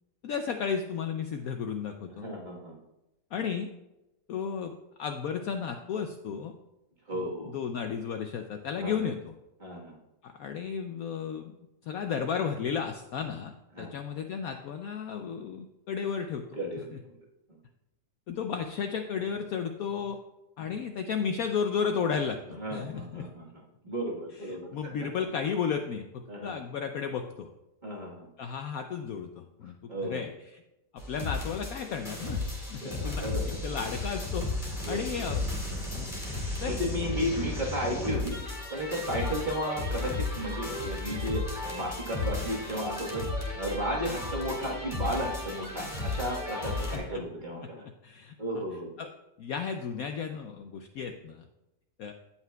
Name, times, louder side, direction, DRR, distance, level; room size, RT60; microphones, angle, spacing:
voice 1, 0.2-2.3 3.3-3.7 4.3-4.7 5.0-6.5 7.1-9.3 10.2-11.5 11.8-16.4 16.9-17.0 18.3-20.2 20.6-23.3 24.3-27.5 28.4-30.6 30.9-33.2 33.6-35.5 35.9-36.1 36.6-36.8 46.9-47.2 47.8-48.3 49.0-49.1 49.4-51.4 52.0-52.1, left 6 dB, 70° left, 6 dB, 0.9 m, -34 dB
voice 2, 2.1-2.8 7.1-7.5 8.8-9.0 9.6-10.0 13.7-13.9 16.5-17.1 22.5-24.7 26.3-26.5 27.8-28.3 29.9-30.2 32.8-33.6 34.8-35.4 36.6-38.4 38.7-41.4 41.7-43.3 43.6-47.8 48.4-48.9, equal, 30° right, -3 dB, 1.4 m, -34 dB
sound 1, 31.0-47.0, left 2 dB, 25° left, 1.9 m, -34 dB
16.5 x 5.8 x 2.3 m, 0.95 s
omnidirectional pair, 1.9 m